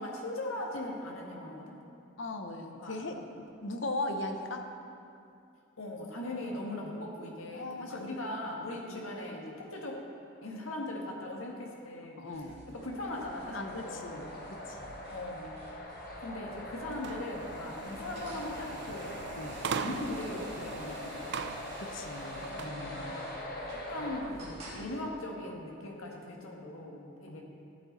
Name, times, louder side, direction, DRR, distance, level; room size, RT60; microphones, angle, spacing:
voice 1, 0.0-1.8 2.7-3.0 5.8-10.0 10.4-12.3 12.7-14.3 15.1-15.6 16.2-19.2 19.7-21.2 22.3-23.4 23.7-27.4, left 1 dB, 90° left, -1 dB, 1.6 m, -40 dB
voice 2, 2.2-4.6 6.6-6.9 7.5-8.1 8.9-9.1 12.2-12.6 13.5-14.3 14.7-14.9 19.4-19.6 21.9-23.3 24.0-24.1 27.3-27.4, left 2 dB, 65° left, 5 dB, 0.9 m, -39 dB
sound 1, 12.3-24.8, right 1 dB, 30° right, 2.6 m, -51 dB
sound 2, 13.0-24.2, left 1 dB, 45° left, 1.1 m, -42 dB
sound 3, 16.9-22.8, right 5 dB, 55° right, 0.4 m, -41 dB
13.0 x 8.5 x 4.2 m, 2.6 s
head